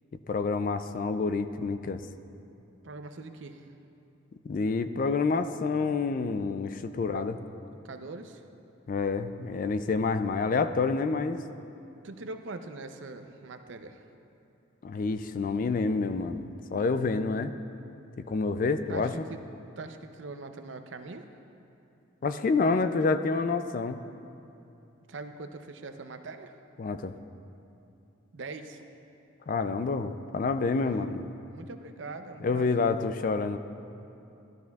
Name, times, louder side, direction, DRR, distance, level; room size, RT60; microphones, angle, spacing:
voice 1, 0.3-2.0 4.4-7.4 8.9-11.4 14.8-17.5 18.2-19.1 22.2-24.0 26.8-27.1 29.5-31.3 32.4-33.6, left 4 dB, 40° left, 10 dB, 0.3 m, -28 dB
voice 2, 2.8-3.7 7.0-7.4 7.8-8.4 12.0-14.0 18.9-19.4 19.8-21.3 25.1-26.5 28.3-28.8 30.6-31.1 31.5-33.0, right 3 dB, 65° right, 7 dB, 0.6 m, -42 dB
14.0 x 12.0 x 2.3 m, 2.8 s
head